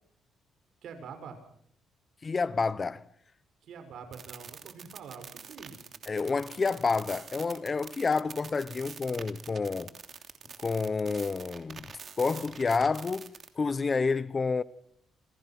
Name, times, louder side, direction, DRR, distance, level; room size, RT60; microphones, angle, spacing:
voice 1, 0.8-1.4 3.6-5.9, right 6 dB, 70° right, 6.1 m, -45 dB
voice 2, 2.2-3.0 6.1-9.9 10.6-11.9 12.2-14.6, left 4 dB, 35° left, 1.0 m, -29 dB
sound 1, 4.1-13.5, right 6 dB, 50° right, 3.0 m, -46 dB
28.5 x 28.0 x 6.1 m
cardioid pair, 90°, 0 cm